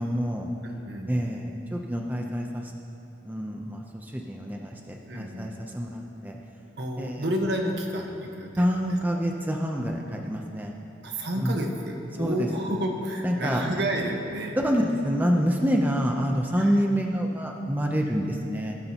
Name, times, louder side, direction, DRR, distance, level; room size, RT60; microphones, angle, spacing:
voice 1, 0.0-0.5 1.1-2.7 3.2-6.4 7.0-7.2 8.6-10.7 11.4-11.6 12.2-12.5 13.2-13.7 14.6-18.8, equal, 10° right, 1 dB, 0.6 m, -27 dB
voice 2, 0.6-1.2 5.0-5.5 6.8-9.2 11.0-14.6 16.6-16.8, right 1 dB, 60° right, 2 dB, 1.3 m, -31 dB
20.0 x 12.0 x 3.0 m, 2.9 s
head